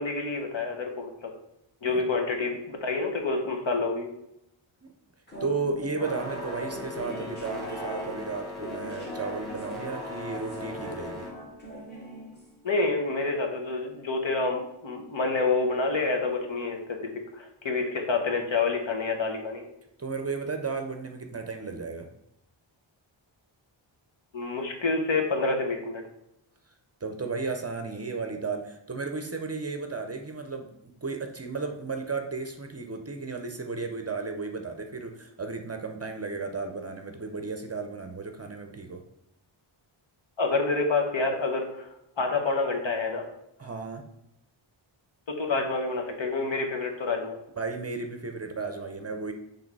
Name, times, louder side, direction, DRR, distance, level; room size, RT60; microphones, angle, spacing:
voice 1, 0.0-1.3 1.8-4.1 12.6-17.0 17.3-19.7 24.3-26.0 40.4-41.9 42.2-43.2 45.3-47.4, left 3 dB, 65° left, 3 dB, 1.1 m, -28 dB
sound 1, 5.3-12.7, right 1 dB, 20° left, 1.6 m, -39 dB
voice 2, 5.4-11.3 20.0-22.1 27.0-39.0 43.6-44.0 47.6-49.3, right 4 dB, 30° right, 5 dB, 0.6 m, -34 dB
sound 2, 6.0-11.3, left 2 dB, ahead, 1.5 m, -40 dB
6.3 x 3.4 x 4.7 m, 0.80 s
wide cardioid pair, 115°, 50 cm